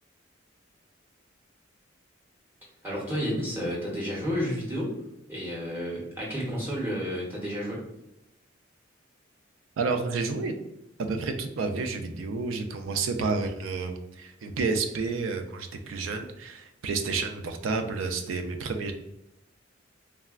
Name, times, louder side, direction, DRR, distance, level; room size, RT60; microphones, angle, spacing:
voice 1, 2.8-5.0 5.3-7.8, equal, 10° right, -5 dB, 0.6 m, -31 dB
voice 2, 9.8-10.5 11.0-18.9, right 4 dB, 85° right, 6 dB, 0.4 m, -30 dB
3.3 x 2.0 x 2.3 m, 0.83 s
head